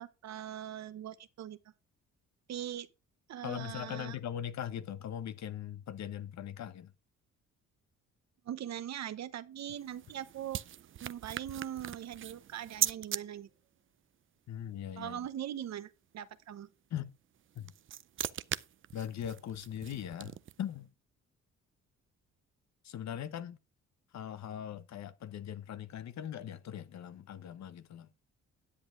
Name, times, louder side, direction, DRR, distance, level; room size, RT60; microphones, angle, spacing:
voice 1, 0.0-1.6 2.5-2.9 3.3-4.2 8.5-10.6 11.0-13.5 15.0-16.7, right 10 dB, 60° right, 0.9 m, -41 dB
voice 2, 3.4-6.9 14.5-15.3 16.9-17.1 17.5-17.7 18.9-20.9 22.8-23.6 24.1-28.1, left 10 dB, 65° left, 1.0 m, -40 dB
sound 1, 9.6-13.2 17.4-20.7, right 10 dB, 45° right, 0.5 m, -39 dB
9.9 x 8.1 x 3.8 m
cardioid pair, 90°, 30 cm